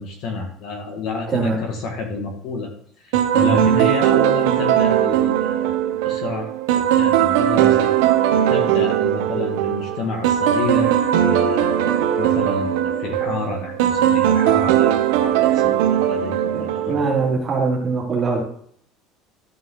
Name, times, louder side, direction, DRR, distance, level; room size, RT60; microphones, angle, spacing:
voice 1, 0.0-2.7 3.0-7.9 8.5-16.3 16.6-17.0, left 4 dB, 45° left, 3 dB, 2.0 m, -29 dB
sound 1, 3.1-17.3, right 11 dB, 85° right, 0.9 m, -19 dB
voice 2, 3.4-3.7 16.5-18.4, right 4 dB, 15° right, -3 dB, 2.6 m, -22 dB
13.0 x 5.6 x 4.0 m, 0.64 s
cardioid pair, 175°, 0 cm